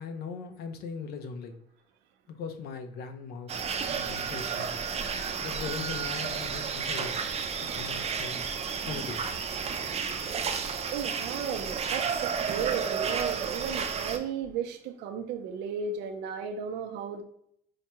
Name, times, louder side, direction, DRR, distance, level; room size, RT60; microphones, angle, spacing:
voice 1, 0.0-1.6 2.3-4.8 5.4-7.1 7.6-8.4 8.8-9.5, left 5 dB, 70° left, 0.6 m, -40 dB
sound 1, 3.5-14.2, right 6 dB, 40° right, 0.5 m, -32 dB
voice 2, 10.9-17.2, right 7 dB, 90° right, 0.6 m, -34 dB
4.7 x 2.2 x 2.8 m
cardioid pair, 110°, 17 cm